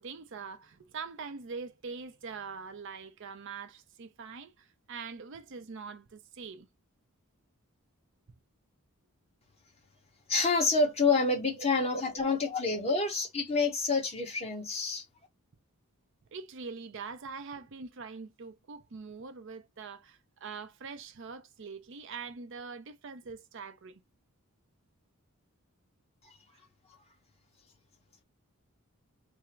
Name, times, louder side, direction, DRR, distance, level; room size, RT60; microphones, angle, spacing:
voice 1, 0.0-6.7 12.1-12.3 16.3-24.0, right 5 dB, 55° right, 0.5 m, -43 dB
voice 2, 10.3-15.0 26.2-26.3, left 3 dB, 30° left, 1.1 m, -28 dB
3.4 x 2.0 x 4.2 m
head